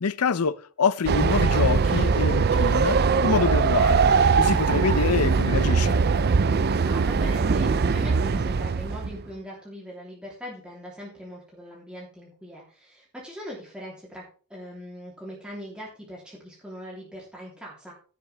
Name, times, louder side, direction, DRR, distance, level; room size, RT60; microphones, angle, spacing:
voice 1, 0.0-4.0 4.4-6.0, left 5 dB, 85° left, 0.6 m, -26 dB
Train, 1.1-9.2, right 5 dB, 45° right, 0.5 m, -21 dB
voice 2, 6.8-14.2 14.5-17.9, equal, 5° right, 3.2 m, -41 dB
15.5 x 7.9 x 3.4 m
head